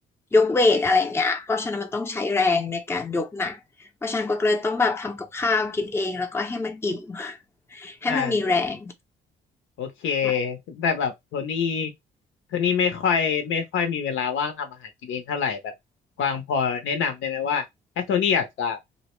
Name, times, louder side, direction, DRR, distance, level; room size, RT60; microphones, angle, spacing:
voice 1, 0.3-7.4 7.7-8.9 10.2-10.3, left 3 dB, 10° left, 0.6 m, -24 dB
voice 2, 9.8-11.9 12.5-15.7 16.2-17.7 18.0-18.8, left 6 dB, 80° left, 0.7 m, -25 dB
2.6 x 2.0 x 3.0 m
cardioid pair, 90°, 20 cm